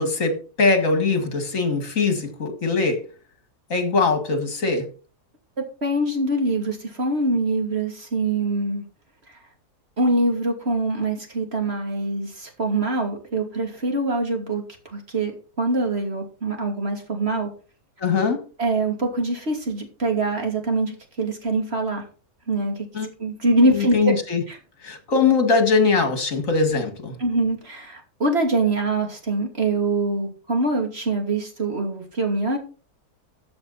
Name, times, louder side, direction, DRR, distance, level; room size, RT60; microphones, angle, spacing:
voice 1, 0.0-3.0 3.7-4.9 18.0-18.4 22.9-23.1 23.6-24.4 24.8-27.2, left 4 dB, 55° left, 2.4 m, -21 dB
voice 2, 5.6-8.9 10.0-15.3 15.6-17.5 18.6-22.0 22.5-22.8 23.2-24.1 24.5-24.6 27.2-32.6, right 2 dB, 40° right, 3.0 m, -24 dB
14.0 x 7.7 x 4.1 m
omnidirectional pair, 1.7 m